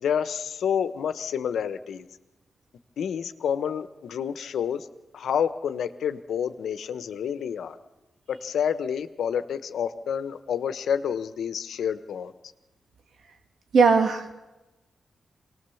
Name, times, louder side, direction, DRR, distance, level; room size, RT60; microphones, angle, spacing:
voice 1, 0.0-2.1 3.0-4.9 5.1-7.8 8.3-12.3, left 8 dB, 85° left, 12 dB, 1.0 m, -29 dB
voice 2, 13.7-14.3, right 5 dB, 75° right, 5 dB, 2.5 m, -19 dB
25.5 x 19.0 x 7.1 m, 1.1 s
cardioid pair, 65°, 0 cm